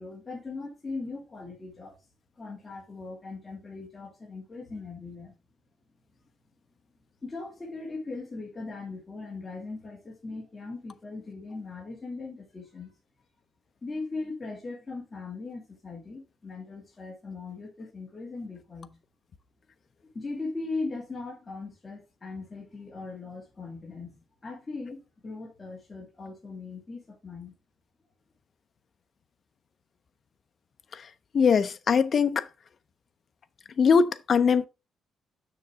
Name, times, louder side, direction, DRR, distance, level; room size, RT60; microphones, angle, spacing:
voice 1, 0.0-1.9 2.4-5.3 7.2-12.9 13.8-19.0 20.1-27.5, left 3 dB, 20° left, 2.4 m, -39 dB
voice 2, 31.3-32.5 33.8-34.7, left 6 dB, 40° left, 0.6 m, -21 dB
6.8 x 6.5 x 3.5 m
cardioid pair, 160°, 0 cm